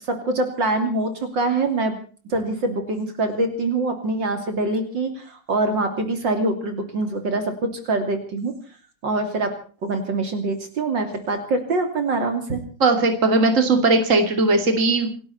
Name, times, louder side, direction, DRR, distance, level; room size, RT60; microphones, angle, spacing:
voice 1, 0.1-2.0 2.3-8.5 9.0-9.6 9.8-12.6, right 2 dB, 70° right, 6 dB, 3.6 m, -24 dB
voice 2, 12.8-15.1, right 3 dB, 40° right, 6 dB, 3.0 m, -18 dB
28.5 x 12.0 x 4.2 m, 0.41 s
omnidirectional pair, 2.1 m